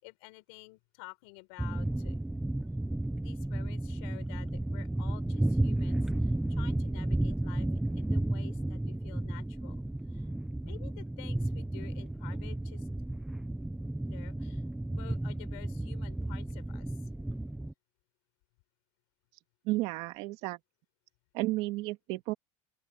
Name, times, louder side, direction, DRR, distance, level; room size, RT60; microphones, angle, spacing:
voice 1, 0.0-2.2 3.2-7.7 7.9-9.8 10.1-10.3 10.6-12.9 14.0-14.6 14.9-17.0, left 30 dB, 75° left, 5.9 m, -51 dB
sound 1, 1.6-17.7, right 1 dB, 5° right, 0.5 m, -33 dB
voice 2, 19.7-20.6 21.3-22.3, right 19 dB, 60° right, 2.0 m, -32 dB
open air
cardioid pair, 160°, 12 cm